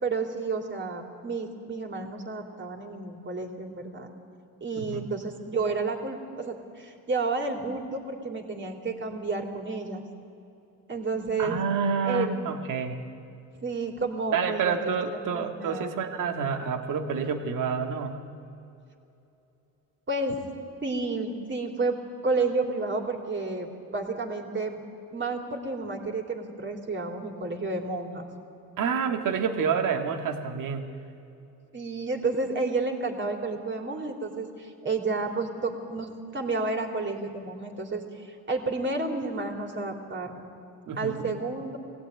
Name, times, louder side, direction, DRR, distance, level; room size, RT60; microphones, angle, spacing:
voice 1, 0.0-4.1 4.6-10.0 10.9-11.6 12.0-12.3 13.6-15.9 20.1-20.4 20.8-22.0 22.2-24.8 25.1-28.3 31.7-40.4 41.0-41.8, right 3 dB, 30° right, 2 dB, 3.3 m, -31 dB
voice 2, 4.8-5.1 11.4-13.0 14.3-18.2 28.8-30.9 40.9-41.3, right 6 dB, 60° right, 5 dB, 2.0 m, -28 dB
21.5 x 16.5 x 9.4 m, 2.8 s
cardioid pair, 90°, 35 cm